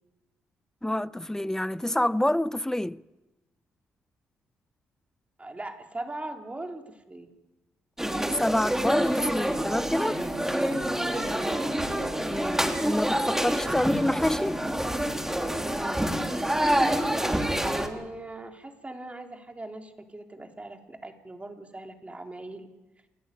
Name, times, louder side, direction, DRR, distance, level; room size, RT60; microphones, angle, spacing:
voice 1, 0.8-3.0 8.3-10.2 12.2-14.6, left 1 dB, 10° left, 0.7 m, -27 dB
voice 2, 5.4-7.3 11.4-11.6 12.0-12.2 17.1-22.7, right 2 dB, 25° right, 4.0 m, -40 dB
sound 1, 8.0-17.9, right 1 dB, 10° right, 3.5 m, -27 dB
29.0 x 11.0 x 9.5 m
hypercardioid pair, 45°, 5 cm